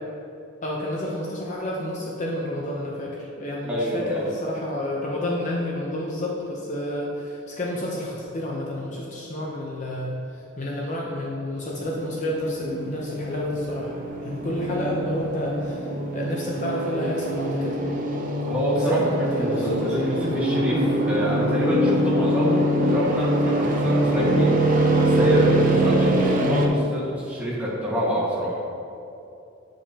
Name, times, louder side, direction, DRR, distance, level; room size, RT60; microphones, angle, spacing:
voice 1, 0.6-10.2 10.6-13.9 14.2-17.8 18.8-20.1, left 1 dB, 40° left, -3 dB, 0.7 m, -30 dB
voice 2, 3.6-4.3 18.4-19.0 19.4-24.5 25.0-28.6, equal, 5° right, -8 dB, 1.5 m, -26 dB
sound 1, 11.8-26.7, right 1 dB, 40° right, 0.6 m, -24 dB
9.2 x 5.1 x 2.8 m, 2.7 s
head